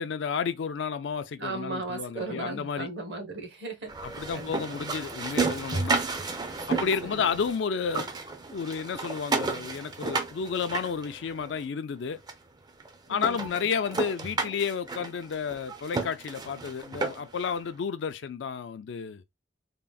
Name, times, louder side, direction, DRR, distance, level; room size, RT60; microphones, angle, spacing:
voice 1, 0.0-2.9 4.0-6.0 6.7-8.1 8.5-12.2 13.1-19.4, left 6 dB, 80° left, 0.4 m, -31 dB
voice 2, 1.4-4.9 6.7-7.4 13.1-13.6, right 2 dB, 65° right, 1.1 m, -37 dB
sound 1, 3.9-7.6 7.8-11.6 12.3-12.4 12.8-12.9 13.2-17.4, right 4 dB, 20° right, 0.4 m, -32 dB
3.6 x 2.1 x 2.2 m
head